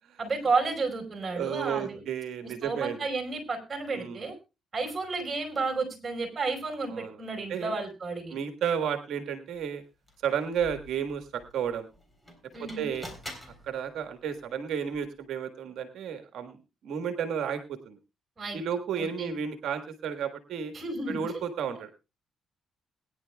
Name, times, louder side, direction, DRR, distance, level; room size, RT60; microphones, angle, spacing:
voice 1, 0.2-2.0 2.4-4.3 4.7-8.3 12.5-12.9 18.4-18.6 19.0-19.3 20.7-21.2, right 4 dB, 35° right, 4 dB, 4.9 m, -32 dB
voice 2, 1.3-3.1 3.9-4.2 6.9-7.2 7.5-7.7 8.3-9.8 10.2-11.9 12.6-13.1 13.6-18.0 18.5-20.7 21.1-21.9, right 7 dB, 75° right, 7 dB, 1.5 m, -32 dB
sound 1, 9.5-9.6 10.0-15.3, left 1 dB, 10° left, 3.8 m, -48 dB
21.5 x 10.5 x 2.3 m, 0.28 s
cardioid pair, 90°, 0 cm